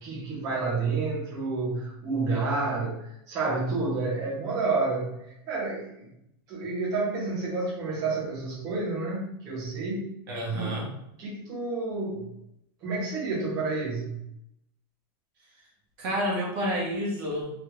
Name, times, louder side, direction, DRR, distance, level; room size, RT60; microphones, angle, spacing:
voice 1, 0.0-6.1 6.5-10.1 10.5-10.9 11.2-12.3 12.8-14.2, right 3 dB, 25° right, -7 dB, 0.8 m, -30 dB
voice 2, 10.3-10.9 16.0-17.5, equal, 55° right, -3 dB, 1.1 m, -29 dB
3.0 x 2.5 x 3.1 m, 0.78 s
supercardioid pair, 170°, 13 cm